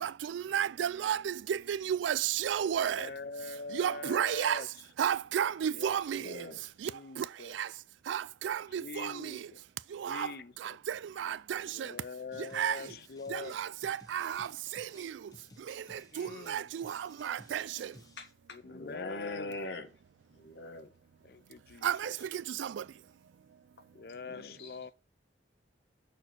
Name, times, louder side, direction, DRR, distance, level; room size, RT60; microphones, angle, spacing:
voice 1, 0.0-3.1 3.7-4.6 5.0-6.3 6.8-6.9 7.2-7.3 7.6-7.7 8.1-9.4 10.0-10.3 10.9-11.9 12.5-12.8 13.3-14.5 14.8-15.1 15.9-17.9 21.8-22.8, right 9 dB, 90° right, 0.3 m, -32 dB
voice 2, 2.7-4.7 5.7-6.4 6.9-7.6 8.7-9.6 9.9-10.8 11.6-13.6 16.1-16.7 18.5-19.6 21.2-22.3 23.9-24.9, left 4 dB, 55° left, 0.4 m, -44 dB
voice 3, 6.1-6.6 18.2-19.9 20.3-20.9 24.3-24.7, left 2 dB, 80° left, 1.4 m, -42 dB
sound 1, 12.3-18.3, left 1 dB, 20° left, 0.9 m, -57 dB
6.4 x 4.3 x 6.3 m
head